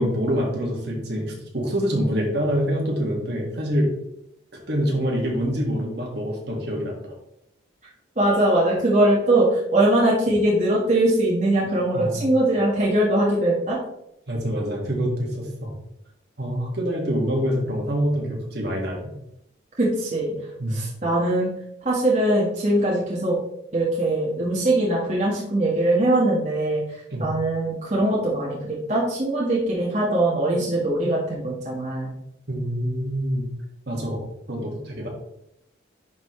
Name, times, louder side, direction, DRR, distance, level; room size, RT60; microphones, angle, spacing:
voice 1, 0.0-3.9 4.5-7.0 11.9-12.2 14.3-15.7 16.4-19.1 20.6-20.8 27.1-27.3 32.5-33.5 33.9-35.1, equal, 55° right, -1 dB, 2.0 m, -26 dB
voice 2, 8.2-13.8 19.8-20.3 20.7-21.5 21.8-23.4 23.7-26.8 27.2-28.6 28.9-32.1, right 1 dB, 40° right, -5 dB, 1.6 m, -21 dB
10.5 x 4.2 x 3.2 m, 0.81 s
head